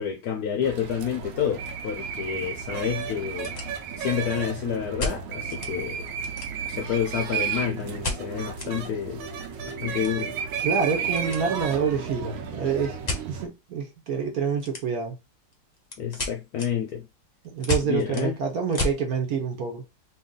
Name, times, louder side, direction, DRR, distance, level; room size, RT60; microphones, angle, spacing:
voice 1, 0.0-3.6 4.0-6.0 6.7-9.2 9.6-10.3 16.0-17.1 17.8-18.4, left 8 dB, 70° left, 0.9 m, -29 dB
sound 1, 0.6-13.5, right 7 dB, 75° right, 1.2 m, -33 dB
sound 2, 3.3-4.2 5.0-5.7 6.1-6.8 8.0-8.7 9.1-9.2 9.4-11.4 11.7-12.0 13.0-13.3 14.6-15.1 15.5-19.0, left 2 dB, 30° left, 0.8 m, -32 dB
sound 3, 7.5-13.5, right 5 dB, 40° right, 1.3 m, -42 dB
voice 2, 10.6-13.0 13.3-15.2 17.5-19.8, right 6 dB, 60° right, 1.2 m, -27 dB
3.0 x 2.7 x 3.7 m
omnidirectional pair, 2.0 m